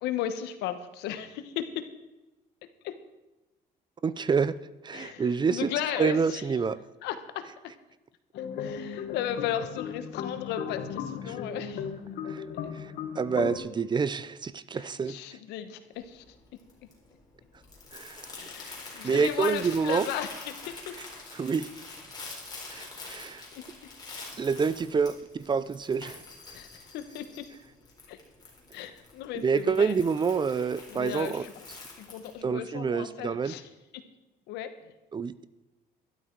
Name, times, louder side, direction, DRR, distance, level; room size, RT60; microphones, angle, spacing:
voice 1, 0.0-1.8 2.8-2.9 4.9-6.6 7.0-7.4 8.3-11.9 14.7-16.3 18.4-21.0 23.1-23.2 23.5-23.6 26.5-27.4 28.1-28.2 28.7-29.9 30.9-34.0 34.5-34.9, left 10 dB, 90° left, 10 dB, 1.1 m, -36 dB
voice 2, 4.0-4.6 4.8-5.7 6.0-6.8 12.3-12.4 13.2-15.2 17.9-18.3 19.0-20.1 21.3-21.7 22.7-23.4 24.4-26.2 29.3-31.5 32.4-33.5 35.1-35.5, right 5 dB, 25° right, 17 dB, 0.5 m, -27 dB
sound 1, 8.3-13.6, left 7 dB, 70° left, 1.4 m, -36 dB
Crumpling crinkling, 15.9-32.4, left 3 dB, 25° left, 4.0 m, -46 dB
12.5 x 12.0 x 4.6 m, 1.0 s
cardioid pair, 110°, 17 cm